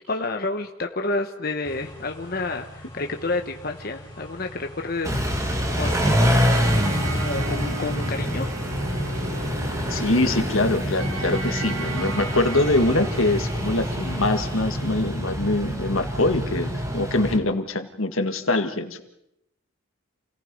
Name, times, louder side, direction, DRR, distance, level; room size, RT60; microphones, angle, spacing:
voice 1, 0.0-6.2 7.0-8.5, left 2 dB, 45° left, 4 dB, 1.1 m, -30 dB
sound 1, 1.6-14.9, left 1 dB, 15° left, 7.9 m, -44 dB
Car / Idling / Accelerating revving vroom, 5.0-17.4, equal, 15° right, 2.1 m, -26 dB
sound 2, 5.8-14.6, right 2 dB, 75° right, 1.7 m, -35 dB
voice 2, 9.9-19.0, left 2 dB, 75° left, 8 dB, 1.8 m, -24 dB
28.5 x 18.0 x 5.4 m, 0.81 s
head